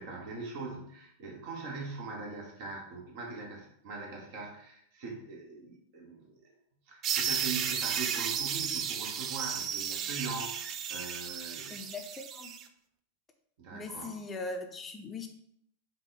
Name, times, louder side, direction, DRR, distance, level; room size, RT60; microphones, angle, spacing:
voice 1, 0.0-6.4 6.9-11.7 13.6-14.2, right 4 dB, 50° right, 1 dB, 1.1 m, -41 dB
sound 1, 7.0-12.6, right 8 dB, 30° right, 0.3 m, -34 dB
voice 2, 11.7-12.5 13.7-15.3, left 3 dB, 20° left, 3 dB, 0.6 m, -40 dB
5.4 x 2.3 x 3.9 m, 0.70 s
figure-of-eight pair, 90°, 0 cm